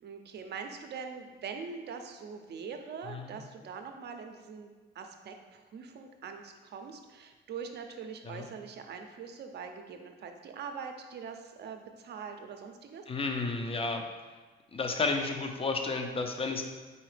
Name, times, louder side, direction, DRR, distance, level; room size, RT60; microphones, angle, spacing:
voice 1, 0.0-4.7 4.9-13.0, right 6 dB, 60° right, 5 dB, 0.5 m, -43 dB
voice 2, 3.1-3.4 8.2-8.5 13.1-14.0 14.7-16.6, left 3 dB, 30° left, 4 dB, 0.5 m, -32 dB
4.2 x 3.9 x 3.2 m, 1.3 s
cardioid pair, 90°, 20 cm